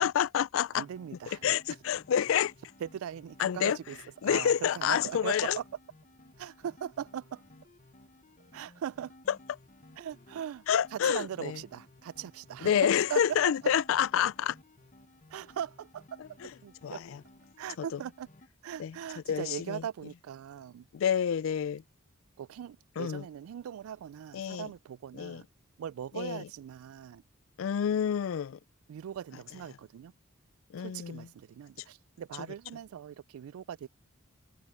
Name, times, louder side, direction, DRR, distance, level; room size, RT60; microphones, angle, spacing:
voice 1, 0.0-0.8 1.4-2.5 3.4-3.8 4.2-5.6 9.3-9.4 10.7-11.6 12.6-14.6 16.4-16.5 16.8-17.2 17.8-18.0 18.8-19.0 19.3-19.8 20.9-21.8 23.0-23.2 24.3-24.7 25.1-25.4 26.1-26.5 27.6-28.6 30.7-31.3, left 9 dB, 70° left, 0.3 m, -28 dB
sound 1, 0.8-18.5, left 1 dB, 35° left, 1.0 m, -58 dB
voice 2, 0.8-1.4 2.8-4.0 4.2-5.6 6.4-7.4 8.5-9.1 10.0-10.6 10.9-12.7 13.1-13.2 15.3-17.1 17.6-18.3 18.6-20.9 22.4-25.5 25.8-27.2 28.9-30.1 30.8-33.9, right 9 dB, 85° right, 0.3 m, -40 dB
head